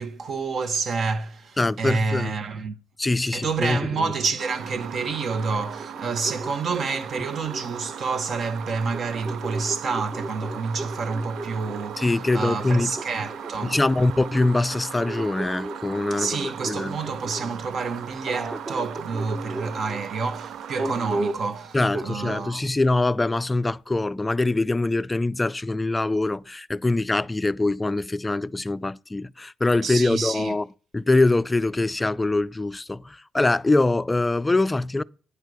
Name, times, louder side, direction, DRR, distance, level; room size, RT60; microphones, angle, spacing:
voice 1, 0.0-2.7 3.3-13.8 16.1-22.7 29.8-30.5, right 4 dB, 55° right, 1.1 m, -28 dB
voice 2, 1.6-2.3 3.0-4.1 12.0-12.9 13.6-17.0 21.7-30.7 30.9-35.0, left 2 dB, 15° left, 0.3 m, -23 dB
sound 1, 4.4-22.4, right 8 dB, 75° right, 0.4 m, -39 dB
sound 2, 5.7-8.1 8.9-11.9 12.7-17.5 18.2-20.0 20.8-21.5 21.9-22.4, right 2 dB, 30° right, 0.9 m, -35 dB
9.8 x 4.6 x 6.5 m
cardioid pair, 90°, 0 cm